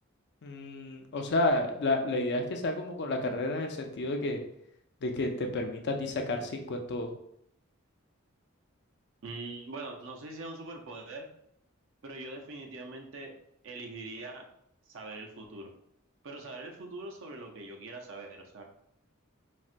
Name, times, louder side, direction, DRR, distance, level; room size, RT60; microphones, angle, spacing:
voice 1, 0.4-4.4 5.0-7.1, left 2 dB, 55° left, 4 dB, 0.4 m, -31 dB
voice 2, 9.2-11.3 12.0-13.3 13.6-14.5 14.9-15.7 16.2-18.6, right 2 dB, 65° right, 1 dB, 0.6 m, -42 dB
4.1 x 2.1 x 2.5 m, 0.73 s
head